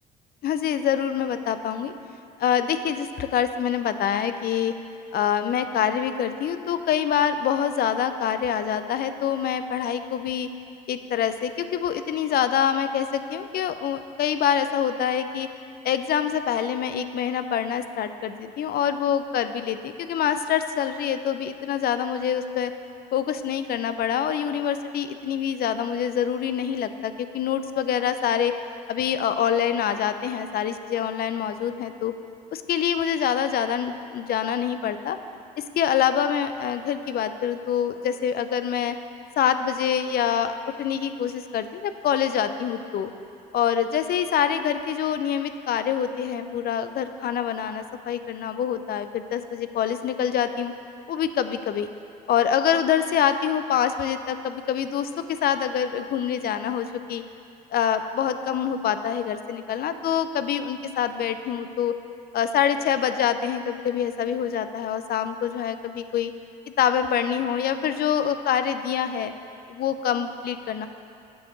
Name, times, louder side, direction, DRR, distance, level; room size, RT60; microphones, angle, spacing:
voice 1, 0.4-1.9 2.4-4.7 5.1-10.5 10.9-15.5 15.8-22.7 23.1-28.6 28.9-32.1 32.5-35.2 35.6-38.9 39.4-43.1 43.5-50.7 51.1-51.9 52.3-57.2 57.7-62.0 62.3-66.3 66.7-69.3 69.7-70.9, left 9 dB, 45° left, 10 dB, 0.5 m, -25 dB
7.1 x 5.0 x 6.9 m, 2.6 s
hypercardioid pair, 60°, 21 cm